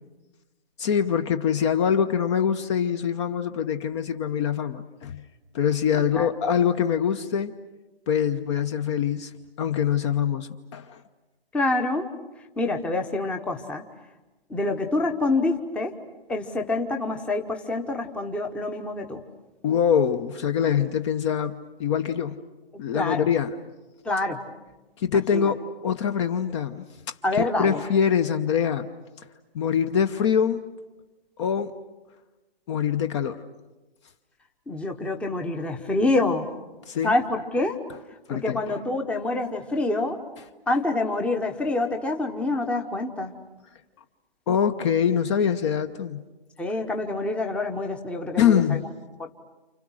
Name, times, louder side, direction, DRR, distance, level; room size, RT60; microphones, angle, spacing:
voice 1, 0.8-5.2 5.5-7.5 8.1-9.3 9.6-11.0 19.6-22.3 22.8-23.6 25.0-28.9 29.5-30.6 31.4-31.8 32.7-33.4 36.9-37.1 38.3-38.7 44.5-46.2 48.4-48.9, left 8 dB, 30° left, 10 dB, 0.9 m, -24 dB
voice 2, 11.5-12.1 12.6-13.8 14.5-15.9 16.3-19.2 22.9-23.2 24.0-24.4 25.3-25.5 27.2-27.8 34.7-36.4 37.0-37.8 38.3-40.2 40.7-43.3 46.6-48.8, left 2 dB, 5° left, 4 dB, 1.0 m, -26 dB
29.5 x 29.0 x 6.4 m, 1.1 s
hypercardioid pair, 150°, 31 cm